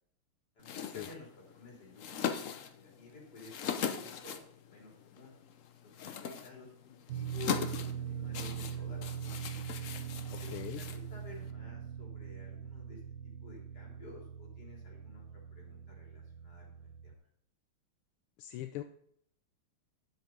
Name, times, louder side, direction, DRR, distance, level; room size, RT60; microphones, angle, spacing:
sound 1, 0.6-11.5, left 7 dB, 70° left, 0.7 m, -41 dB
voice 1, 0.6-2.2 2.7-4.4 4.7-5.3 6.0-9.5 10.4-15.3 15.5-17.2, left 3 dB, 50° left, -2 dB, 3.7 m, -53 dB
sound 2, 7.1-17.1, right 8 dB, 70° right, 1.0 m, -42 dB
voice 2, 10.3-10.8 18.4-18.8, left 14 dB, 85° left, 7 dB, 1.5 m, -41 dB
10.5 x 7.6 x 3.8 m, 0.69 s
omnidirectional pair, 2.3 m